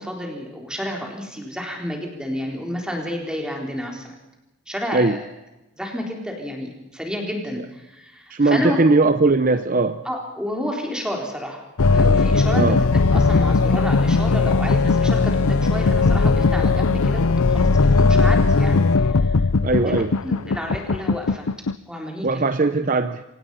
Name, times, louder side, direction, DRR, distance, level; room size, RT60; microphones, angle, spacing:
voice 1, 0.0-4.2 4.7-5.3 5.8-8.8 10.0-11.7 11.9-12.7 13.1-19.4 19.8-21.5 21.9-22.4, equal, 5° right, 1 dB, 3.8 m, -30 dB
voice 2, 8.3-10.0 12.5-12.8 19.6-20.1 22.2-23.2, right 3 dB, 40° right, 10 dB, 0.7 m, -19 dB
sound 1, 11.8-21.7, left 4 dB, 75° left, 0.7 m, -18 dB
25.5 x 18.5 x 5.6 m, 0.97 s
head